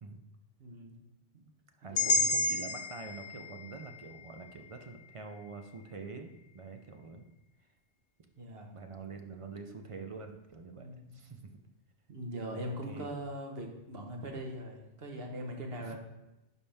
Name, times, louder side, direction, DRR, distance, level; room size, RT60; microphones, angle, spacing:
voice 1, 0.6-1.0 1.8-2.2 8.4-8.7 10.8-11.2 12.1-16.0, equal, 60° right, 2 dB, 1.3 m, -41 dB
voice 2, 1.8-7.2 8.7-10.9 11.1-11.4 12.8-13.1 15.8-16.0, right 4 dB, 40° right, 5 dB, 0.5 m, -45 dB
sound 1, 2.0-6.0, left 3 dB, 50° left, 0.5 m, -33 dB
10.5 x 4.4 x 3.4 m, 0.95 s
omnidirectional pair, 1.2 m